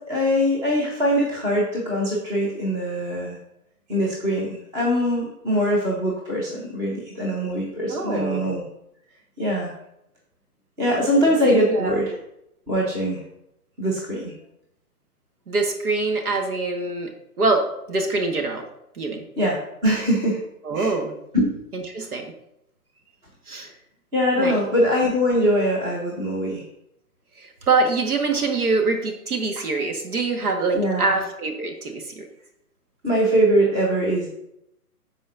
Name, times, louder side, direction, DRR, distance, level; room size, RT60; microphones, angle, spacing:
voice 1, 0.1-3.4 3.9-8.6 9.4-9.7 10.8-12.1 12.7-13.2 13.8-14.3 19.4-19.6 19.8-20.4 20.7-20.9 21.3-21.5 24.1-26.6 30.7-31.2 33.0-34.3, equal, 5° right, -4 dB, 0.7 m, -22 dB
voice 2, 7.9-8.6 11.4-12.0 15.5-17.1 17.4-18.6 19.0-19.2 20.6-21.2 21.7-22.2 23.5-23.7 24.4-24.5 27.4-32.3, right 3 dB, 65° right, 3 dB, 1.6 m, -24 dB
13.0 x 4.3 x 2.6 m, 0.80 s
figure-of-eight pair, 135°, 47 cm